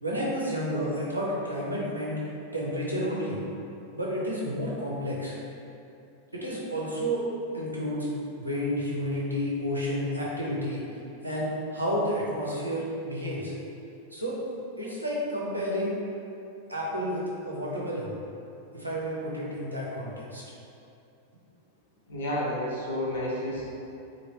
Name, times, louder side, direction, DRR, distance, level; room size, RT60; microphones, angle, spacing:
voice 1, 0.0-2.2 2.5-3.4 3.9-5.4 6.3-7.3 7.5-8.1 8.4-10.8 11.2-13.5 14.1-14.4 14.8-16.0 16.7-18.1 18.7-20.4, equal, 85° right, -6 dB, 0.6 m, -30 dB
voice 2, 22.1-23.7, left 1 dB, 65° left, -6 dB, 0.7 m, -30 dB
3.1 x 2.6 x 2.8 m, 2.7 s
figure-of-eight pair, 90°, 0 cm